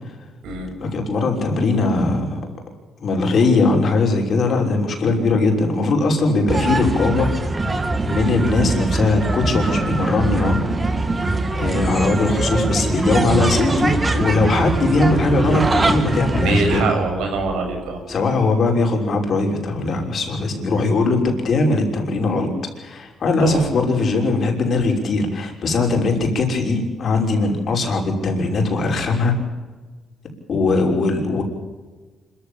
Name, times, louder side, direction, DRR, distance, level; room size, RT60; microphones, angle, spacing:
voice 1, 0.8-2.5 3.0-7.3 8.0-10.6 11.5-16.8 18.1-22.5 22.8-29.3 30.5-31.4, left 3 dB, 55° left, 2 dB, 5.9 m, -20 dB
sound 1, 6.5-16.8, right 2 dB, 25° right, 2.4 m, -22 dB
voice 2, 16.4-18.0 23.4-23.6, right 3 dB, 85° right, 3 dB, 6.7 m, -23 dB
26.0 x 15.0 x 8.7 m, 1.3 s
cardioid pair, 90°, 0 cm